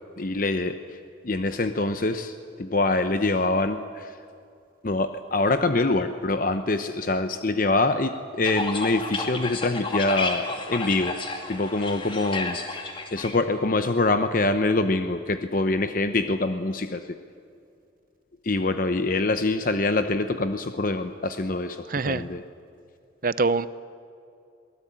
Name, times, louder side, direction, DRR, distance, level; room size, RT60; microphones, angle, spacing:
voice 1, 0.2-1.0 1.2-4.2 4.8-11.2 11.5-17.2 18.4-22.4, left 2 dB, 45° left, 9 dB, 0.8 m, -25 dB
sound 1, 8.4-13.3, left 3 dB, 25° left, 2.5 m, -31 dB
voice 2, 21.9-22.2 23.2-23.7, right 3 dB, 45° right, 15 dB, 0.7 m, -24 dB
23.5 x 18.0 x 8.9 m, 2.5 s
head